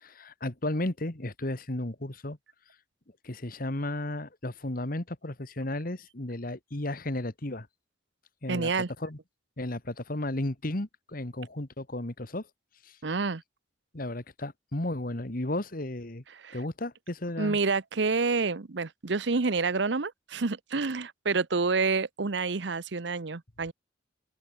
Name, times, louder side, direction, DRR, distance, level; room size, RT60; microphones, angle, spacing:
voice 1, 0.0-2.4 3.2-7.7 8.4-8.7 9.0-9.2 9.6-12.5 12.9-13.0 13.9-16.2 16.5-17.6, left 1 dB, 50° left, 1.9 m, -34 dB
voice 2, 8.5-8.9 13.0-13.4 16.3-16.6 17.4-23.7, right 4 dB, 70° right, 0.9 m, -28 dB
head